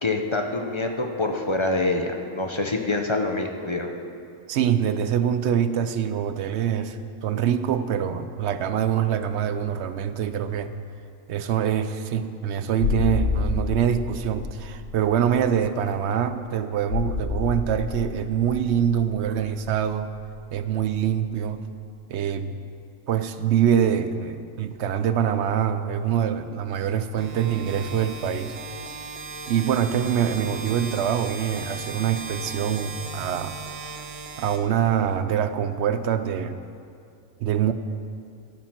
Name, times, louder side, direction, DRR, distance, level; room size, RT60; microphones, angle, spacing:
voice 1, 0.0-3.9, left 2 dB, 35° left, 3 dB, 0.4 m, -26 dB
voice 2, 4.5-10.7 11.3-20.1 20.5-21.7 22.1-22.6 23.1-28.6 28.9-29.0 29.5-33.6 34.4-36.6 37.4-37.7, right 9 dB, 65° right, 10 dB, 0.7 m, -24 dB
sound 1, 12.8-21.2 21.4-21.6, left 5 dB, 65° left, 1.1 m, -30 dB
sound 2, 27.2-35.2, right 3 dB, 50° right, 1.3 m, -37 dB
12.5 x 8.8 x 5.9 m, 2.4 s
omnidirectional pair, 1.5 m